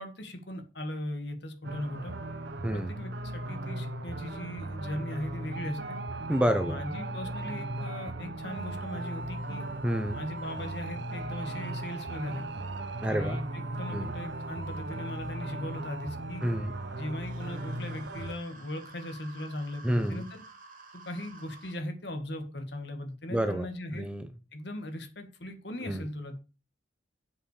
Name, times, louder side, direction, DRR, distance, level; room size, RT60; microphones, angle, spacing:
voice 1, 0.0-2.1 2.7-6.0 6.6-9.7 10.1-12.5 13.1-16.4 17.0-20.4 20.9-24.1 24.5-26.4, left 1 dB, 60° left, 1.7 m, -38 dB
sound 1, 1.6-18.3, right 2 dB, 60° right, 1.0 m, -37 dB
voice 2, 6.3-6.8 9.8-10.2 13.0-13.4 13.9-14.1 16.4-16.7 19.8-20.2 23.3-23.7 23.9-24.3 25.8-26.1, equal, 5° right, 0.8 m, -29 dB
sound 2, 17.2-21.8, right 3 dB, 45° right, 2.3 m, -51 dB
7.7 x 5.7 x 6.6 m
head